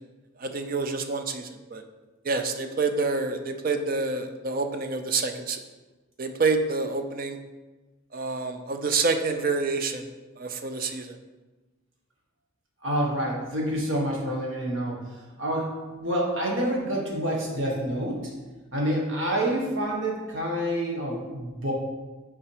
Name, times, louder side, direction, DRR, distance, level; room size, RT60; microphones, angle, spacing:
voice 1, 0.4-1.8 2.2-5.6 6.2-7.4 8.1-10.0 10.4-11.2, right 4 dB, 45° right, 7 dB, 0.5 m, -27 dB
voice 2, 12.8-15.0 15.4-15.7 16.0-18.2 18.7-21.7, right 1 dB, 65° right, -2 dB, 1.6 m, -27 dB
5.9 x 4.8 x 4.8 m, 1.2 s
head